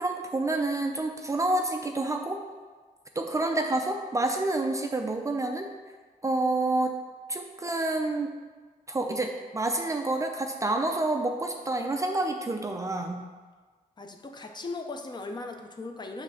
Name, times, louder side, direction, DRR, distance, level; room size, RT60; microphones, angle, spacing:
voice 1, 0.0-2.4 3.2-5.7 6.2-7.0 7.3-8.3 8.9-13.2, right 2 dB, 20° right, 3 dB, 0.4 m, -28 dB
voice 2, 14.0-16.2, left 3 dB, 30° left, 4 dB, 0.6 m, -38 dB
7.5 x 3.3 x 6.3 m, 1.4 s
wide cardioid pair, 160°, 15 cm